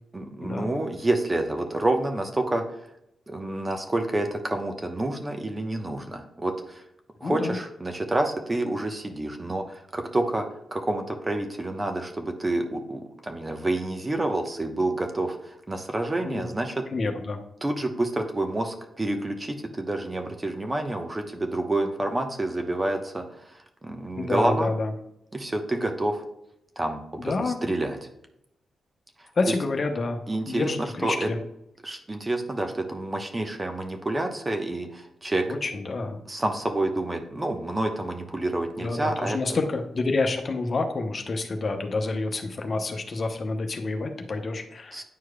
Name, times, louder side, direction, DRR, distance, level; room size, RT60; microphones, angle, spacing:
voice 1, 0.1-2.6 3.3-6.8 7.2-16.8 17.6-24.7 25.3-26.2 26.8-28.0 30.3-31.3 31.8-35.5 36.3-39.4 44.9-45.0, right 2 dB, 25° right, 5 dB, 1.0 m, -28 dB
voice 2, 7.2-7.5 16.2-16.4 16.9-17.4 24.2-24.9 27.2-27.7 29.3-30.2 30.5-31.4 35.5-36.2 38.8-45.0, left 3 dB, 50° left, 5 dB, 0.8 m, -28 dB
9.4 x 4.7 x 2.3 m, 0.79 s
hypercardioid pair, 40°, 0 cm